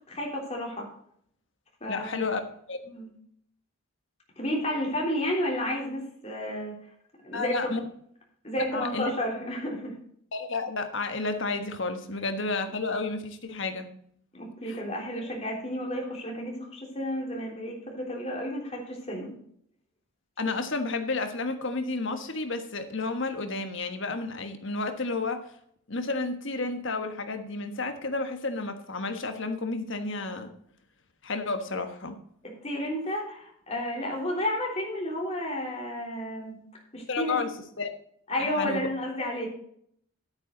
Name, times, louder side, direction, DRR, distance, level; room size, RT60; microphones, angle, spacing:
voice 1, 0.1-0.9 1.8-2.3 2.9-3.1 4.4-6.7 7.2-7.7 8.4-9.9 14.3-19.3 32.4-36.5 36.9-37.4 38.3-39.5, equal, 30° left, -2 dB, 3.5 m, -31 dB
voice 2, 1.9-2.4 2.7-2.8 7.3-7.8 8.7-9.1 10.3-13.9 14.6-14.8 20.4-25.4 25.9-30.5 31.2-32.2 37.1-37.5 37.8-37.9 38.4-38.9, left 3 dB, 55° left, 7 dB, 1.4 m, -31 dB
11.0 x 9.0 x 3.9 m, 0.66 s
head